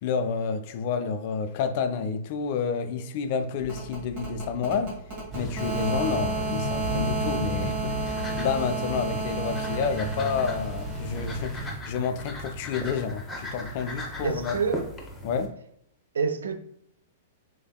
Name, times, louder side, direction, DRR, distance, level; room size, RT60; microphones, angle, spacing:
voice 1, 0.0-5.0 5.3-14.6 15.2-15.5, left 6 dB, 50° left, 0.4 m, -29 dB
sound 1, 3.6-11.5, right 3 dB, 50° right, 1.5 m, -33 dB
sound 2, 5.3-11.8, right 1 dB, 20° right, 0.8 m, -34 dB
sound 3, 7.1-15.5, left 1 dB, 10° left, 0.8 m, -39 dB
voice 2, 14.2-14.9 16.1-16.6, right 5 dB, 75° right, 0.3 m, -27 dB
3.8 x 3.3 x 2.2 m
figure-of-eight pair, 105°, 0 cm